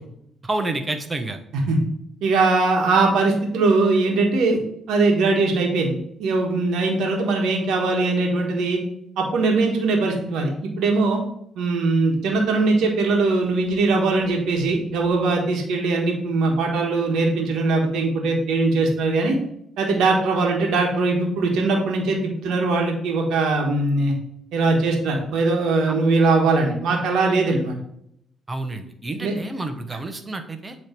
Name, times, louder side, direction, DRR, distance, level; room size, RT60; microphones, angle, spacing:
voice 1, 0.4-1.4 25.9-26.0 28.5-30.8, right 2 dB, 25° right, 7 dB, 0.9 m, -29 dB
voice 2, 2.2-4.6 4.9-5.9 6.2-8.8 9.2-11.2 11.5-19.4 19.8-24.1 24.5-27.7 29.2-29.4, right 3 dB, 85° right, 1 dB, 1.3 m, -21 dB
8.3 x 3.2 x 4.5 m, 0.72 s
cardioid pair, 90°, 0 cm